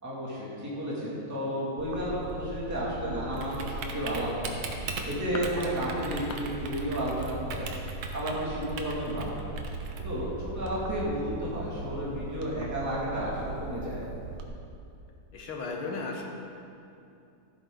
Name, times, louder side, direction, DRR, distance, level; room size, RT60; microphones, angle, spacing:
voice 1, 0.0-4.5 5.0-7.7 8.1-9.4 10.0-10.3 10.5-14.0, equal, 10° right, -7 dB, 2.3 m, -32 dB
Typing, 1.8-14.4, right 3 dB, 75° right, 1.7 m, -38 dB
sound 1, 5.1-6.6 6.8-7.1 7.4-8.8 9.1-9.3 9.6-9.7 10.0-10.1, left 5 dB, 65° left, 1.1 m, -45 dB
sound 2, 5.2-11.8, right 3 dB, 30° left, 0.6 m, -44 dB
voice 2, 15.3-16.2, left 3 dB, 85° left, 0 dB, 2.3 m, -35 dB
14.5 x 8.6 x 3.9 m, 2.6 s
omnidirectional pair, 2.3 m